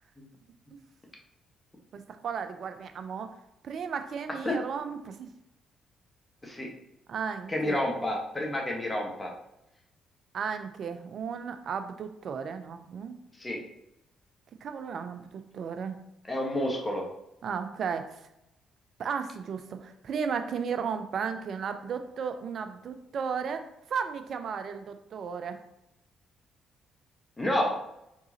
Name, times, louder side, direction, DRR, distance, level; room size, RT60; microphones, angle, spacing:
voice 1, 1.9-3.3 3.6-5.3 7.1-7.8 10.3-13.2 14.6-16.0 17.4-18.2 19.0-25.6, right 6 dB, 55° right, 8 dB, 0.4 m, -34 dB
voice 2, 7.5-9.3 13.4-13.6 16.3-17.0 27.4-27.7, left 1 dB, 20° left, -1 dB, 1.3 m, -29 dB
4.6 x 3.8 x 2.9 m, 0.85 s
hypercardioid pair, 45°, 0 cm